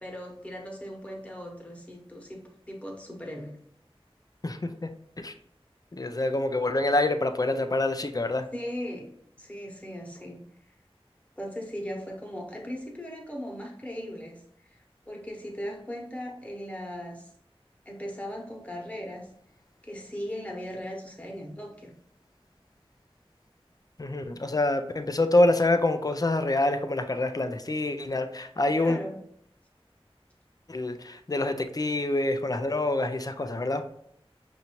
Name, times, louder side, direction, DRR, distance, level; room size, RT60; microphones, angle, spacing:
voice 1, 0.0-3.5 8.5-9.1 9.4-10.5 11.4-14.4 14.7-17.3 17.8-19.3 19.8-21.9 28.8-29.2, equal, 15° left, -1 dB, 1.1 m, -38 dB
voice 2, 4.4-4.9 5.2-5.3 6.0-8.5 24.0-29.0 30.7-33.8, left 2 dB, 40° left, 8 dB, 0.4 m, -26 dB
5.5 x 2.7 x 3.0 m, 0.69 s
wide cardioid pair, 45°, 10 cm